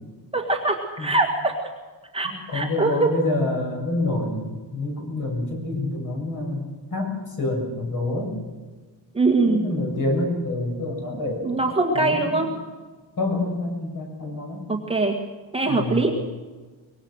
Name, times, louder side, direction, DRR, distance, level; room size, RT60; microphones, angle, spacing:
voice 1, 0.3-1.5 2.1-3.1 9.1-9.6 11.4-12.5 14.7-15.1 15.5-16.1, right 3 dB, 15° right, 0 dB, 1.8 m, -22 dB
voice 2, 2.2-4.4 4.7-6.6 6.9-8.4 9.5-11.6 11.9-12.4 13.2-14.7 15.6-16.0, left 2 dB, 45° left, 1 dB, 7.2 m, -27 dB
24.0 x 21.5 x 6.5 m, 1.3 s
cardioid pair, 175°, 44 cm